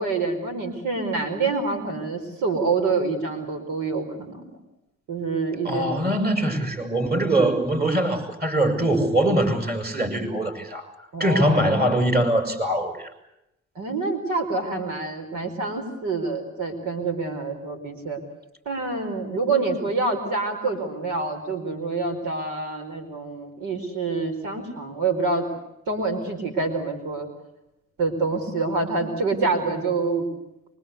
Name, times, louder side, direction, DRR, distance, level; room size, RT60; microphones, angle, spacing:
voice 1, 0.0-4.4 5.1-6.2 11.1-11.6 13.7-18.2 18.6-25.5 25.9-27.3 28.0-30.3, right 3 dB, 80° right, 6 dB, 5.0 m, -26 dB
voice 2, 5.6-10.9 11.2-13.1, right 1 dB, 30° right, 7 dB, 7.3 m, -22 dB
24.5 x 24.0 x 8.3 m, 0.86 s
cardioid pair, 90°, 30 cm